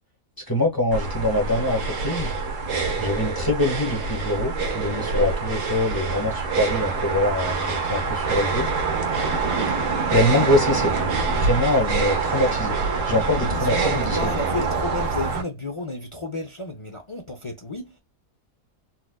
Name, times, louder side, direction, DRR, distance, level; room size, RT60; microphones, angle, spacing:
voice 1, 0.5-2.3 3.0-8.7 10.1-14.2, left 1 dB, 15° left, 1.1 m, -24 dB
sound 1, 0.9-15.4, right 4 dB, 60° right, 1.2 m, -25 dB
voice 2, 13.4-18.0, left 2 dB, 50° left, 0.3 m, -32 dB
4.2 x 2.4 x 2.3 m
omnidirectional pair, 1.7 m